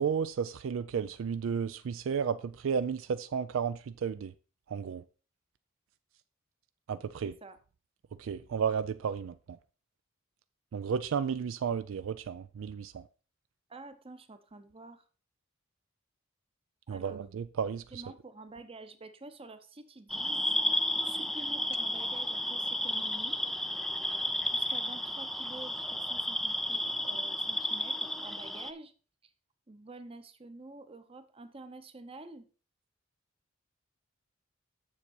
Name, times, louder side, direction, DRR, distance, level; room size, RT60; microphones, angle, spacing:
voice 1, 0.0-4.3 4.7-5.0 6.9-7.3 8.2-9.4 10.7-13.1 16.9-18.0, right 7 dB, 70° right, 0.4 m, -33 dB
voice 2, 7.2-7.6 13.7-15.0 16.9-17.2 17.9-23.4 24.5-28.9 29.2-29.3 29.7-32.5, right 2 dB, 30° right, 0.8 m, -49 dB
sound 1, 20.1-28.7, left 1 dB, ahead, 0.3 m, -32 dB
7.3 x 6.7 x 4.3 m
head